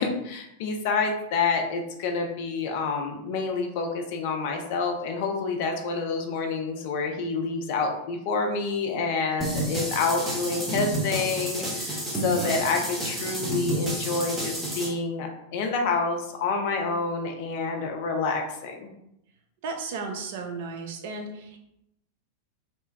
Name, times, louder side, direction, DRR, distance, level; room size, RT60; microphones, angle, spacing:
voice 1, 0.0-18.9, left 4 dB, 50° left, 3 dB, 0.5 m, -28 dB
sound 1, 9.4-14.9, right 1 dB, 10° right, 0.8 m, -30 dB
voice 2, 19.6-21.6, right 4 dB, 50° right, 3 dB, 0.5 m, -34 dB
2.9 x 2.2 x 3.3 m, 0.80 s
figure-of-eight pair, 90°, 0 cm